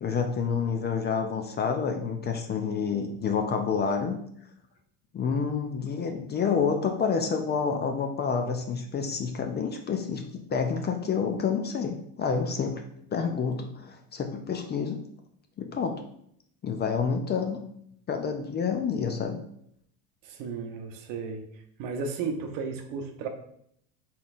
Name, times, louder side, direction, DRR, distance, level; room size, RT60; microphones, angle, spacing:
voice 1, 0.0-4.2 5.1-10.2 10.5-12.8 13.1-15.0 15.6-16.0 16.6-17.6 18.1-19.4, left 6 dB, 25° left, 5 dB, 0.4 m, -28 dB
voice 2, 20.2-21.4 21.8-23.3, right 5 dB, 60° right, 5 dB, 0.8 m, -34 dB
4.1 x 3.8 x 2.5 m, 0.69 s
supercardioid pair, 95°, 38 cm